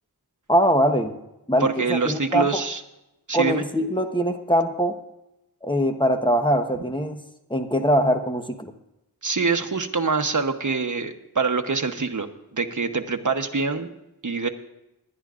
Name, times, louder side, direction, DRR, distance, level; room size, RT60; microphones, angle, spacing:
voice 1, 0.5-1.1 1.5-2.6 3.3-5.0 5.6-7.2 7.5-8.7, equal, 15° left, 6 dB, 1.1 m, -22 dB
voice 2, 1.6-2.8 3.3-3.6 9.2-12.3 12.5-13.9 14.2-14.5, right 4 dB, 50° right, 6 dB, 1.1 m, -25 dB
20.0 x 11.5 x 2.5 m, 0.90 s
wide cardioid pair, 50°, 38 cm